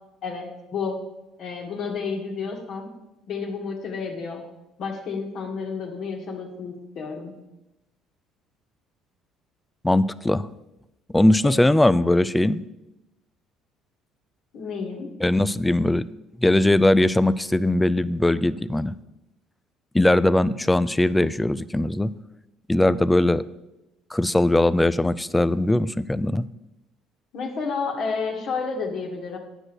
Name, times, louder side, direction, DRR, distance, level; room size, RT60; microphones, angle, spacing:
voice 1, 0.2-1.0 1.4-2.9 3.3-4.4 4.8-7.3 11.4-11.6 14.5-15.1 27.3-29.4, left 5 dB, 55° left, 1 dB, 1.9 m, -31 dB
voice 2, 9.8-10.5 11.1-12.6 15.2-16.1 16.4-18.9 19.9-22.1 22.7-23.4 24.1-26.5, left 1 dB, 10° left, 17 dB, 0.4 m, -20 dB
9.9 x 6.3 x 6.5 m, 0.95 s
cardioid pair, 115°, 0 cm